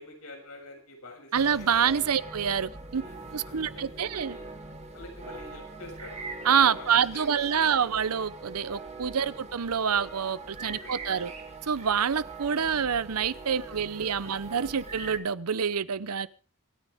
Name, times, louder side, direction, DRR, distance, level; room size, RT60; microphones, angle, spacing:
voice 1, 0.0-2.1 3.0-4.5 4.9-6.2 6.6-7.9 9.1-9.4 10.6-11.3 13.7-14.8, left 2 dB, 75° left, 7.2 m, -48 dB
sound 1, 1.3-15.2, right 3 dB, 30° right, 2.8 m, -43 dB
voice 2, 1.3-3.0 3.3-4.4 6.4-11.3 11.6-16.3, right 7 dB, 90° right, 0.7 m, -27 dB
25.5 x 9.9 x 3.6 m
head